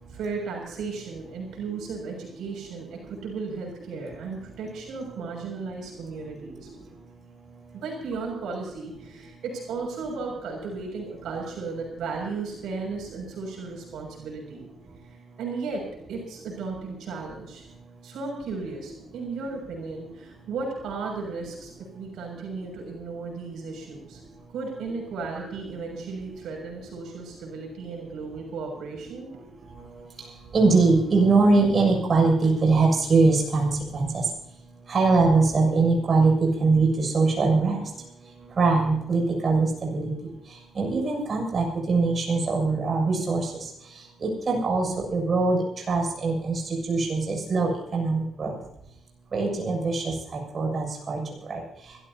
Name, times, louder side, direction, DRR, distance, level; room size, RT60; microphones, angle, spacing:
voice 1, 0.1-6.7 7.7-14.7 15.1-17.6 18.0-24.2 24.5-29.4, right 4 dB, 85° right, 0 dB, 6.6 m, -35 dB
voice 2, 30.5-34.2 34.9-37.8 38.6-40.1 40.8-43.5 44.2-46.6 46.9-48.6 49.3-51.2 51.5-51.6, right 3 dB, 40° right, 0 dB, 7.1 m, -22 dB
25.0 x 15.0 x 2.9 m, 0.79 s
cardioid pair, 105°, 0 cm